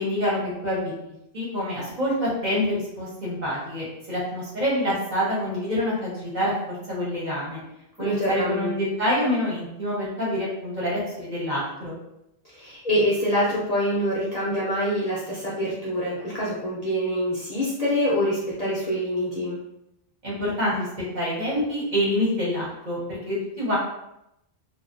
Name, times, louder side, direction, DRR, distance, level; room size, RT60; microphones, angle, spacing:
voice 1, 0.0-7.6 8.0-11.9 20.2-20.9 21.1-23.8, left 1 dB, 45° right, -6 dB, 1.0 m, -27 dB
voice 2, 8.0-8.7 12.4-19.6, equal, 45° left, -7 dB, 0.6 m, -25 dB
2.5 x 2.3 x 2.5 m, 0.83 s
omnidirectional pair, 1.1 m